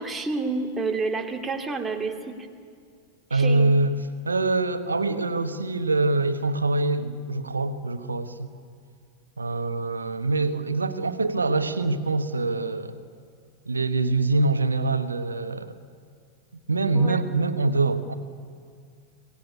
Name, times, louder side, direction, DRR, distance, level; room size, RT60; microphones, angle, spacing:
voice 1, 0.0-2.4 3.3-3.7 16.9-17.2, right 3 dB, 15° right, 3 dB, 2.5 m, -29 dB
voice 2, 3.3-4.0 4.2-8.5 9.4-13.0 13.7-15.7 16.7-18.1, right 3 dB, 75° right, 11 dB, 1.3 m, -24 dB
25.5 x 19.0 x 8.6 m, 2.2 s
figure-of-eight pair, 90°, 0 cm